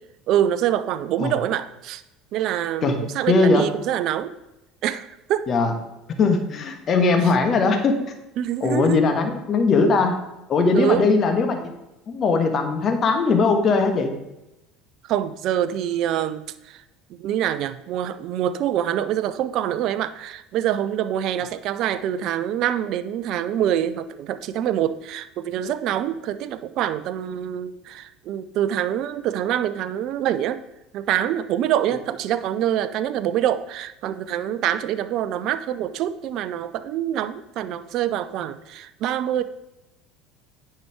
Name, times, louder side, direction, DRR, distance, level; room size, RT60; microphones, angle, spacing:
voice 1, 0.3-2.0 2.3-4.3 4.8-5.5 7.2-7.3 8.4-9.0 10.7-11.1 15.0-16.8 17.1-30.6 30.9-39.4, right 11 dB, 55° right, 13 dB, 0.5 m, -25 dB
voice 2, 3.3-3.6 5.5-5.7 6.2-8.0 8.6-10.2 10.5-11.7 12.1-14.1, left 4 dB, 40° left, 5 dB, 1.4 m, -19 dB
9.4 x 5.7 x 4.8 m, 0.92 s
hypercardioid pair, 70°, 0 cm